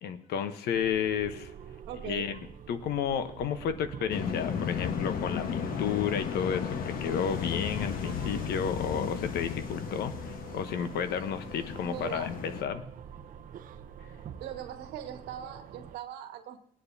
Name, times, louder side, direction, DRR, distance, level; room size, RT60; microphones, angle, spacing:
voice 1, 0.0-1.5 2.0-2.4 2.7-12.8, left 7 dB, 75° left, 1.0 m, -32 dB
sound 1, 0.7-16.0, right 8 dB, 55° right, 0.7 m, -47 dB
voice 2, 1.9-2.3 11.8-12.3 14.4-16.6, right 10 dB, 85° right, 1.6 m, -40 dB
sound 2, 4.1-12.6, left 7 dB, 60° left, 1.2 m, -34 dB
20.5 x 9.5 x 2.7 m
cardioid pair, 110°, 17 cm